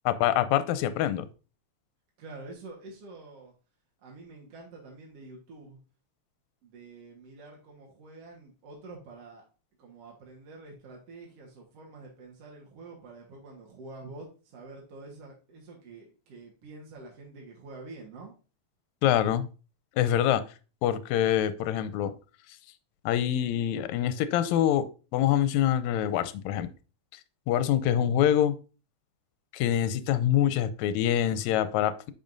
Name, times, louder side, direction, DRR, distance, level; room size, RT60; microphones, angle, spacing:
voice 1, 0.1-1.3 19.0-19.5 20.0-20.4 20.8-22.1 23.1-24.9 25.1-26.7 27.5-28.5 29.5-32.1, left 11 dB, 80° left, 1.9 m, -25 dB
voice 2, 2.2-3.5 4.0-5.8 6.6-9.4 9.8-18.3, right 3 dB, 60° right, 2.3 m, -47 dB
8.7 x 5.4 x 2.6 m
omnidirectional pair, 3.3 m